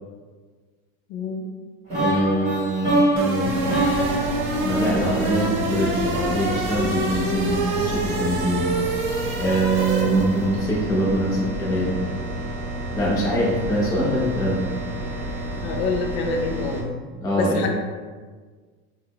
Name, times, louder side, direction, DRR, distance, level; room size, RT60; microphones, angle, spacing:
voice 1, 1.1-1.5 15.6-16.9 17.4-17.7, left 4 dB, 75° left, 3 dB, 0.5 m, -26 dB
voice 2, 1.9-3.6 4.6-8.7 9.3-12.0 12.9-14.7 17.1-17.7, right 1 dB, 10° left, -6 dB, 0.5 m, -23 dB
sound 1, 1.9-5.9, right 1 dB, 20° right, 1.1 m, -24 dB
sound 2, 3.2-10.6, right 2 dB, 65° right, 0.8 m, -27 dB
sound 3, 3.4-16.8, right 1 dB, 35° right, 0.5 m, -31 dB
3.8 x 2.1 x 3.0 m, 1.5 s
cardioid pair, 175°, 33 cm